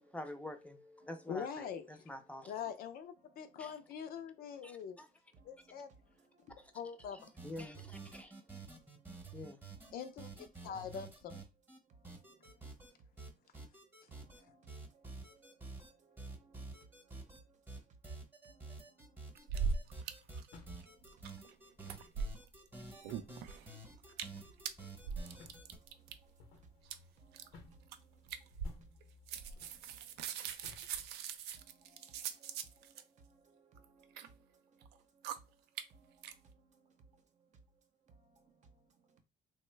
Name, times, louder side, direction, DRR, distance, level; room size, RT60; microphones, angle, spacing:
voice 1, 0.0-2.5 3.6-3.7 4.6-5.1 6.6-6.7 7.4-8.3 9.3-9.6, left 1 dB, 10° left, 0.5 m, -47 dB
voice 2, 1.3-2.0 2.5-5.0 5.5-5.9 6.7-7.2 9.9-11.4, left 7 dB, 60° left, 0.5 m, -43 dB
voice 3, 3.3-3.6 6.2-6.7 8.1-9.1 9.7-10.0 10.5-10.7 11.9-13.4 14.1-17.8 18.4-19.8 20.6-22.1 22.8-26.6 27.2-28.5 29.3-30.9 31.5-34.9 35.1-35.3 35.9-37.2 37.5-37.6 38.1-39.2, right 4 dB, 45° right, 0.7 m, -66 dB
sound 1, 7.2-11.8 12.0-12.9 13.2-14.4 14.7-15.9 16.2-17.4 17.7-25.8, right 3 dB, 10° right, 0.9 m, -50 dB
sound 2, 19.4-20.1 20.4-20.5 20.8-21.5 21.8-22.7 23.0-23.7 24.1-24.4 24.7-26.1 26.9-27.0 27.3-27.6 27.9-28.0 28.3-29.0 29.3-33.0 33.8-34.3 34.8-34.9 35.2-35.4 35.8-35.9 36.2-36.3, right 6 dB, 85° right, 0.4 m, -40 dB
sound 3, 20.1-31.5, left 3 dB, 90° left, 0.8 m, -61 dB
3.0 x 2.1 x 3.2 m
cardioid pair, 110°, 17 cm